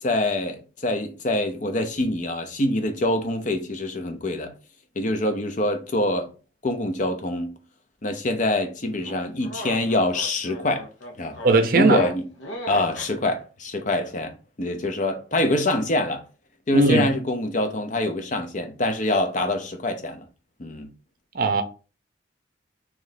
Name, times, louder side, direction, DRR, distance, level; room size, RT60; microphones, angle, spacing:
voice 1, 0.0-4.5 5.0-6.3 6.6-7.5 8.0-10.9 11.2-11.4 11.7-12.2 12.7-16.2 16.7-20.3 20.6-20.9, left 1 dB, 40° left, 0.6 m, -25 dB
sound 1, 9.0-13.1, left 1 dB, 85° left, 1.0 m, -36 dB
voice 2, 11.4-12.0 16.7-17.1 21.3-21.6, right 3 dB, 50° right, 0.6 m, -18 dB
3.1 x 3.1 x 3.9 m
head